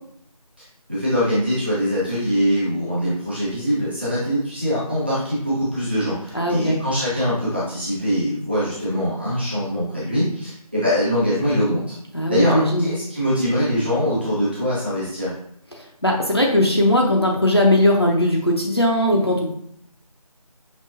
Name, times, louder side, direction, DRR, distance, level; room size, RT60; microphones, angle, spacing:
voice 1, 0.9-11.9 12.3-15.3, equal, 15° right, -10 dB, 1.1 m, -23 dB
voice 2, 6.3-6.8 12.1-12.8 15.8-19.5, left 1 dB, 40° left, -1 dB, 0.6 m, -19 dB
5.5 x 2.9 x 2.7 m, 0.71 s
figure-of-eight pair, 170°, 20 cm